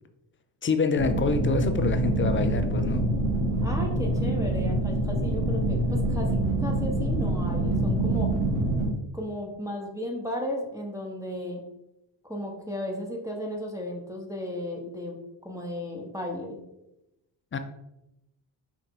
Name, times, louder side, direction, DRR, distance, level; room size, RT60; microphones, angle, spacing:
voice 1, 0.6-3.1 17.5-17.6, left 5 dB, 25° left, 8 dB, 0.5 m, -27 dB
sound 1, 1.0-8.9, right 1 dB, 85° right, 1.6 m, -25 dB
voice 2, 3.6-8.3 9.1-11.6 12.2-15.2 15.4-16.6, left 1 dB, 5° right, -2 dB, 1.0 m, -34 dB
5.0 x 2.8 x 3.7 m, 0.90 s
supercardioid pair, 65°, 49 cm